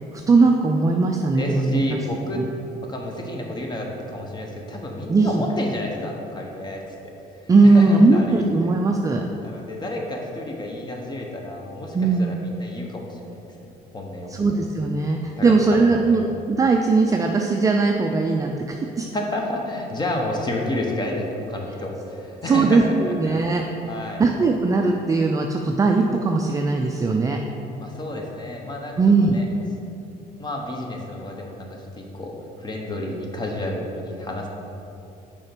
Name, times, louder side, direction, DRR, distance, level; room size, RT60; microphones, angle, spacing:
voice 1, 0.3-2.0 2.4-2.5 5.1-5.4 7.5-9.2 11.9-12.3 14.3-19.1 22.4-23.6 24.2-27.4 29.0-29.4, right 3 dB, 20° right, 2 dB, 0.4 m, -19 dB
voice 2, 1.4-2.4 2.9-6.8 7.6-8.4 9.4-13.4 13.9-14.3 15.4-16.2 19.1-23.4 23.9-24.2 27.8-29.0 29.3-29.4 30.4-31.7 32.0-32.3 32.6-34.5, left 1 dB, 25° left, 1 dB, 1.1 m, -30 dB
6.4 x 4.9 x 4.5 m, 2.8 s
cardioid pair, 110°, 17 cm